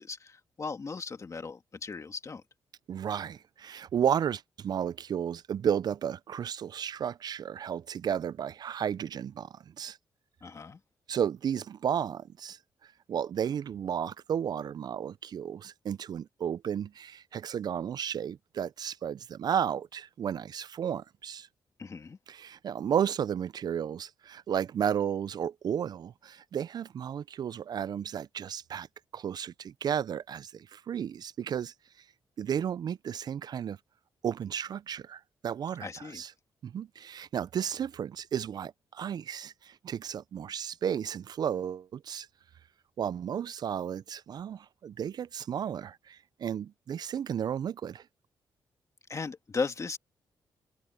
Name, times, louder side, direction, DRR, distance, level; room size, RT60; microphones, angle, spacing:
voice 1, 0.0-2.4 10.4-10.8 21.8-22.2 35.8-36.2 49.1-50.0, left 4 dB, 40° left, 2.1 m, -37 dB
voice 2, 2.9-10.0 11.1-12.6 13.1-21.5 22.3-28.9 29.1-31.7 32.4-33.8 34.2-36.3 36.6-42.3 43.0-48.0, right 8 dB, 60° right, 0.4 m, -33 dB
cardioid pair, 70°, 8 cm